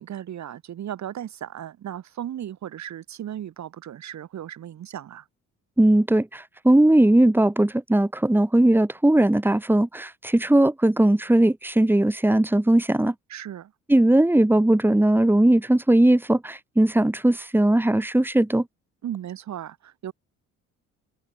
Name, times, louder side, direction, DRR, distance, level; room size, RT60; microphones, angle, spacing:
voice 1, 0.0-5.3 13.3-13.7 19.0-20.1, right 10 dB, 65° right, 3.8 m, -36 dB
voice 2, 5.8-13.1 13.9-18.6, right 1 dB, 5° right, 2.6 m, -19 dB
cardioid pair, 90°, 30 cm